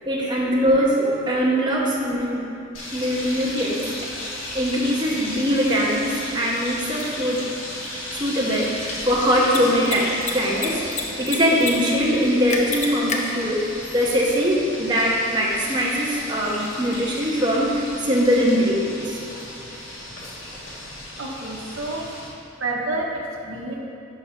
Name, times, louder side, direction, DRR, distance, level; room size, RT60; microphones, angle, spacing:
voice 1, 0.1-2.6 2.9-3.9 4.5-7.4 8.1-10.8 11.2-13.6 13.9-19.2, equal, 20° right, -4 dB, 0.7 m, -22 dB
sound 1, 2.7-22.3, left 1 dB, 75° left, 1.4 m, -35 dB
Mechanisms, 7.0-7.1 9.4-9.6 9.8-10.0 10.2-11.0 11.3-11.7 12.0-12.1 12.5-13.2, left 5 dB, 35° left, 0.7 m, -27 dB
voice 2, 21.2-22.0 22.6-23.8, right 2 dB, 65° right, -2 dB, 1.0 m, -29 dB
5.6 x 4.9 x 5.7 m, 2.7 s
head